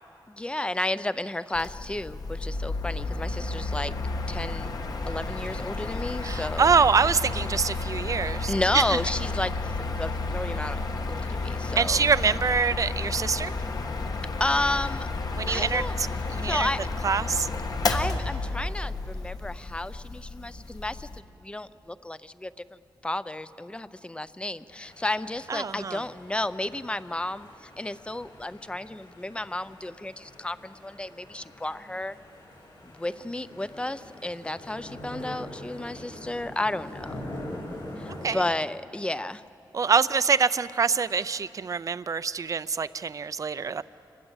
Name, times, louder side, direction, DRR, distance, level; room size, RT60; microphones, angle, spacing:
voice 1, 0.3-3.9 4.3-4.7 5.1-6.7 8.5-10.8 11.1-12.0 14.4-15.1 15.5-16.0 16.4-16.8 17.9-21.1 21.4-22.5 23.0-32.2 32.8-37.2 38.0-39.4, left 1 dB, 15° left, 14 dB, 0.5 m, -32 dB
Mechanical fan, 1.5-21.2, left 3 dB, 55° left, 1.4 m, -31 dB
voice 2, 6.2-9.0 11.8-13.5 15.4-16.7 17.0-17.5 25.5-26.0 38.2-38.4 39.7-43.8, right 5 dB, 45° right, 15 dB, 0.5 m, -25 dB
sound 1, 24.7-38.4, left 1 dB, 75° left, 7.3 m, -44 dB
27.5 x 21.0 x 8.0 m, 2.8 s
wide cardioid pair, 155°, 8 cm